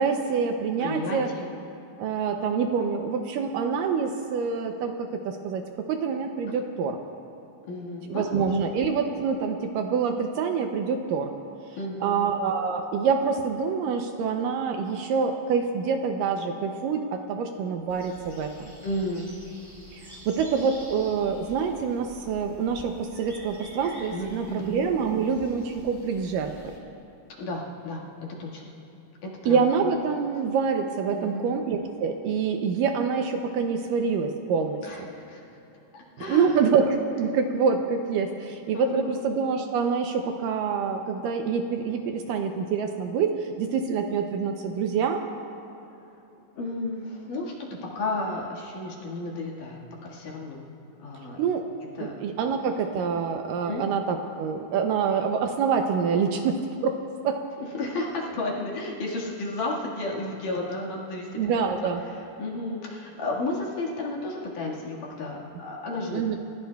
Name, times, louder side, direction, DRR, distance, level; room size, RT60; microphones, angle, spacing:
voice 1, 0.0-1.3 2.0-7.0 8.1-11.3 12.0-18.7 19.9-26.7 29.5-35.1 36.3-45.2 51.4-51.7 52.0-57.4 61.4-62.0 66.1-66.4, right 6 dB, 75° right, 4 dB, 2.1 m, -26 dB
voice 2, 0.8-1.5 7.7-8.5 11.8-12.3 18.8-19.3 24.1-24.7 27.4-28.0 28.4-28.6 29.4-29.6 31.1-31.5 34.8-35.4 35.9-36.6 38.7-39.2 46.6-47.5 48.0-50.6 51.0-51.4 52.0-52.2 53.6-53.8 57.6-61.4 62.1-66.4, left 2 dB, 65° left, -4 dB, 3.2 m, -33 dB
sound 1, 17.9-26.8, right 1 dB, 10° right, 1.3 m, -48 dB
30.0 x 16.0 x 2.3 m, 2.9 s
omnidirectional pair, 4.3 m